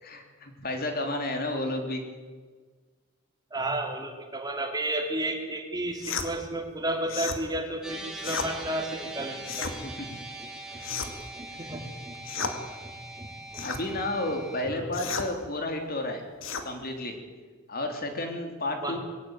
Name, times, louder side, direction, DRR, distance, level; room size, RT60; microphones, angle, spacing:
voice 1, 0.0-2.0 9.8-10.1 10.8-10.9 13.6-16.2 16.6-17.2 17.7-19.0, left 1 dB, 50° left, 4 dB, 3.4 m, -32 dB
voice 2, 3.5-9.8 10.1-12.5 12.8-14.0 14.2-14.3 14.6-15.0 18.8-19.0, right 1 dB, 20° right, 4 dB, 2.7 m, -33 dB
sound 1, 6.0-6.3 7.1-7.4 8.2-8.5 9.4-9.8 10.8-11.3 12.2-12.6 13.5-13.8 14.9-15.3 16.4-16.7, left 5 dB, 70° left, 2.3 m, -33 dB
sound 2, 7.8-14.6, right 2 dB, 5° right, 3.7 m, -42 dB
21.5 x 17.0 x 9.2 m, 1.4 s
head